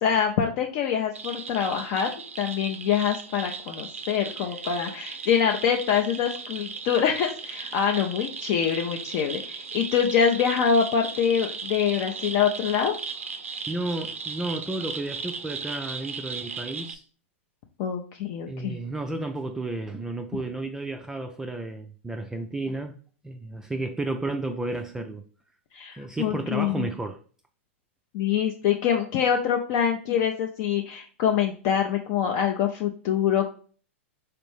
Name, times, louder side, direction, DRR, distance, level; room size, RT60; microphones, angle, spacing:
voice 1, 0.0-2.1 2.4-13.0 17.8-18.8 25.7-26.9 28.1-33.5, left 8 dB, 50° left, 0.5 m, -25 dB
sound 1, 1.1-17.0, right 5 dB, 85° right, 0.4 m, -37 dB
voice 2, 13.7-17.0 18.5-22.9 23.2-25.2 26.0-27.2, right 2 dB, 10° right, 0.3 m, -32 dB
4.3 x 2.5 x 3.3 m
hypercardioid pair, 105°, 7 cm